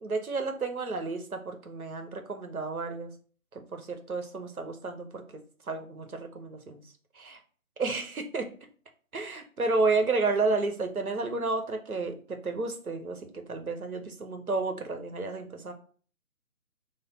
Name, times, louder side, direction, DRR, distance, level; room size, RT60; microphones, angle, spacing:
voice 1, 0.0-3.1 3.5-5.2 5.7-6.8 7.2-7.4 7.8-8.4 9.1-15.7, right 3 dB, 75° right, 5 dB, 0.9 m, -31 dB
3.2 x 2.2 x 4.2 m, 0.42 s
figure-of-eight pair, 145°, 43 cm